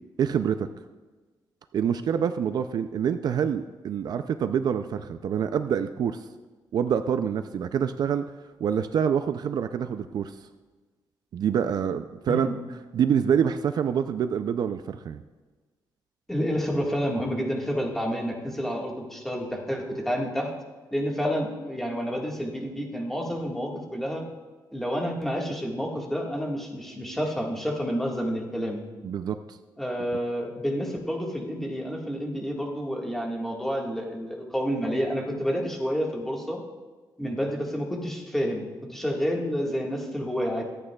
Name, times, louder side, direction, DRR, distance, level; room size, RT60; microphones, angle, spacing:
voice 1, 0.2-0.7 1.7-6.3 6.7-8.3 8.6-10.4 11.3-12.5 12.9-15.2 29.0-29.6, right 8 dB, 60° right, 9 dB, 0.4 m, -26 dB
voice 2, 16.3-20.5 20.9-24.2 24.7-28.8 29.8-36.6 37.2-40.6, equal, 5° left, -1 dB, 1.6 m, -29 dB
23.5 x 8.8 x 2.3 m, 1.3 s
wide cardioid pair, 145°, 8 cm